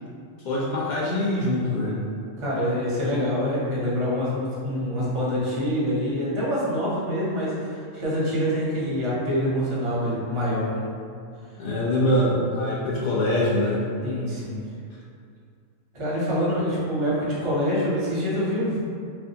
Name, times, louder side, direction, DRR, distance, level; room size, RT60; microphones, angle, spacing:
voice 1, 0.4-2.0 11.6-13.8 16.6-16.7, left 1 dB, 55° left, -6 dB, 0.5 m, -24 dB
voice 2, 2.4-10.8 14.0-14.6 15.9-18.8, equal, 35° right, -7 dB, 0.6 m, -26 dB
2.5 x 2.2 x 2.7 m, 2.3 s
omnidirectional pair, 1.2 m